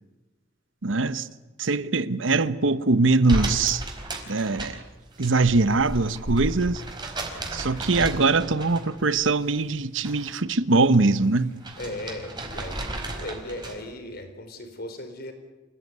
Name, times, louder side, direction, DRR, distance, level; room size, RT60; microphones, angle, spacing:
voice 1, 0.8-1.3 1.6-3.8 4.3-4.8 5.2-6.8 7.5-11.5, right 3 dB, 85° right, 1.0 m, -22 dB
Chewing mastication, 2.8-3.3 3.5-3.8 4.2-8.0 8.3-13.7, equal, 40° right, 5.6 m, -40 dB
sound 1, 3.3-5.3 5.6-9.1 9.4-10.4 10.7-13.9, right 1 dB, 25° right, 4.6 m, -34 dB
voice 2, 11.8-15.3, left 1 dB, 55° left, 4.3 m, -37 dB
28.5 x 16.5 x 9.6 m
head